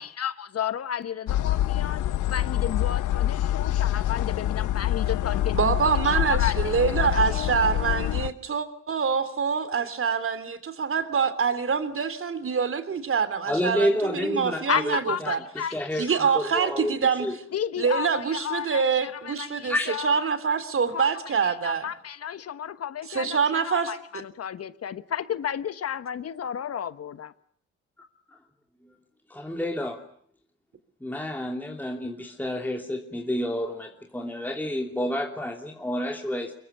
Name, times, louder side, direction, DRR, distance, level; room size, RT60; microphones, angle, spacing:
voice 1, 0.0-5.7 6.0-6.6 7.0-7.2 14.7-16.7 17.5-20.3 20.9-21.1 21.4-27.3, left 9 dB, 55° left, 1.3 m, -33 dB
sound 1, 1.3-8.3, left 13 dB, 80° left, 1.2 m, -26 dB
voice 2, 5.5-15.4 16.0-17.3 17.8-21.9 23.1-23.9, right 6 dB, 45° right, 3.3 m, -25 dB
voice 3, 13.5-16.1 16.3-17.3 19.7-19.9 28.8-28.9 29.3-30.0 31.0-36.5, left 1 dB, 5° left, 2.9 m, -29 dB
25.0 x 22.0 x 9.7 m
cardioid pair, 90°, 30 cm